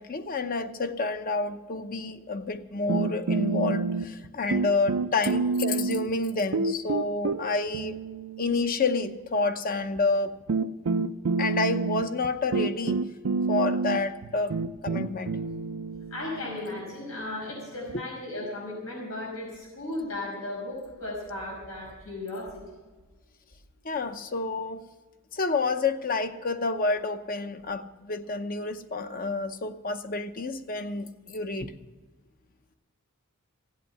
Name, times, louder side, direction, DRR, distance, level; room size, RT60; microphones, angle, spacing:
voice 1, 0.0-8.0 8.4-10.4 11.4-13.0 13.5-14.6 14.8-15.4 17.9-18.0 23.8-24.8 25.3-31.7, left 3 dB, 45° left, 0.8 m, -29 dB
sound 1, 2.9-4.3 4.5-6.1 6.5-9.0 10.0-10.1 10.5-18.0, right 4 dB, 90° right, 0.5 m, -29 dB
voice 2, 16.1-22.5, left 2 dB, 90° left, 5.4 m, -36 dB
16.0 x 8.3 x 7.1 m
head